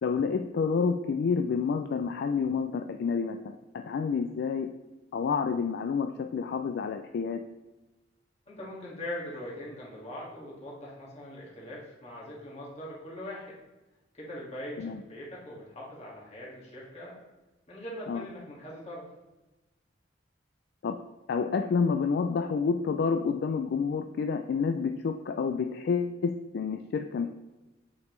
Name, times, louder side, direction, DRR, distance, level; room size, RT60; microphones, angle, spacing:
voice 1, 0.0-4.8 5.1-7.4 14.8-15.0 18.1-18.3 20.8-21.0 21.3-27.3, left 5 dB, 60° left, 7 dB, 0.3 m, -29 dB
voice 2, 8.5-13.6 14.1-17.2 17.7-19.1, left 1 dB, 35° left, -5 dB, 2.0 m, -41 dB
8.0 x 5.2 x 3.2 m, 1.1 s
head